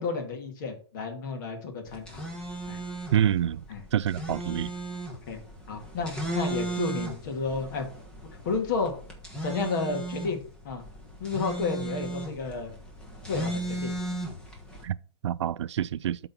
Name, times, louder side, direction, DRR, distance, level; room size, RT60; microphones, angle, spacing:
voice 1, 0.0-2.3 2.7-2.8 3.7-3.8 5.1-5.4 5.7-7.9 8.4-8.9 9.4-10.4 10.6-10.8 11.2-12.7 13.3-13.9, left 4 dB, 45° left, 1.9 m, -31 dB
sound 1, 1.9-14.8, right 2 dB, 5° left, 1.1 m, -36 dB
voice 2, 3.1-3.6 3.9-4.7 14.8-14.9 15.2-16.2, right 10 dB, 80° right, 0.5 m, -26 dB
8.0 x 3.8 x 5.8 m
hypercardioid pair, 170°, 14 cm